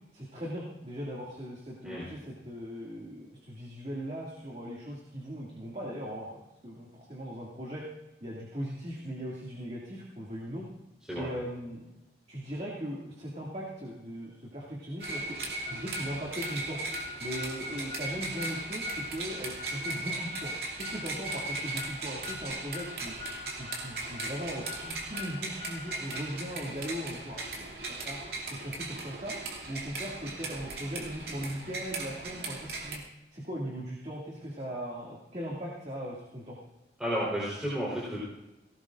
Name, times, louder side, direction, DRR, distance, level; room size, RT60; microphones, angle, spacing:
voice 1, 0.1-7.8 8.2-10.7 11.1-11.8 12.3-15.4 15.7-16.8 17.2-20.5 20.8-23.1 23.5-28.2 28.5-29.4 29.7-33.0 33.3-36.6, equal, 40° right, -4 dB, 2.4 m, -39 dB
sound 1, 15.0-33.0, right 2 dB, 60° right, 2.7 m, -37 dB
voice 2, 37.0-38.2, equal, 5° right, -8 dB, 3.8 m, -32 dB
18.5 x 18.0 x 2.6 m, 0.98 s
head